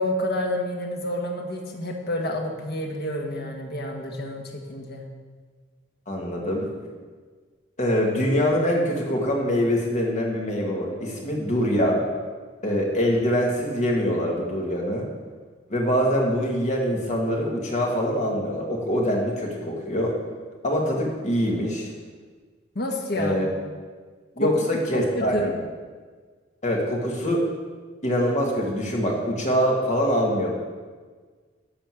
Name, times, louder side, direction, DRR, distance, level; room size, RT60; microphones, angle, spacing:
voice 1, 0.0-5.1 22.7-23.5 24.4-25.5, left 1 dB, 55° left, 1 dB, 1.4 m, -29 dB
voice 2, 6.1-6.7 7.8-12.0 12.6-15.1 15.7-20.1 20.6-21.9 23.1-23.5 24.4-25.6 26.6-27.4 28.0-30.5, equal, 40° left, -1 dB, 1.9 m, -24 dB
11.5 x 4.3 x 7.7 m, 1.5 s
head